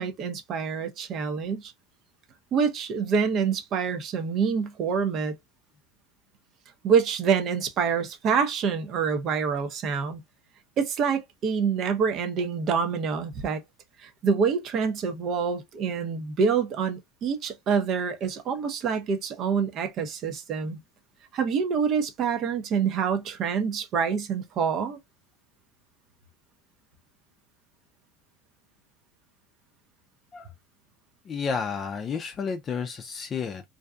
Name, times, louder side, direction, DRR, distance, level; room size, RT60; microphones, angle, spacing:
voice 1, 0.0-1.7 2.5-5.3 6.8-10.2 10.8-13.6 14.0-20.8 21.3-25.0, right 6 dB, 45° right, 0.7 m, -26 dB
voice 2, 31.3-33.6, left 6 dB, 30° left, 0.4 m, -31 dB
2.6 x 2.2 x 2.4 m
supercardioid pair, 100°, 0 cm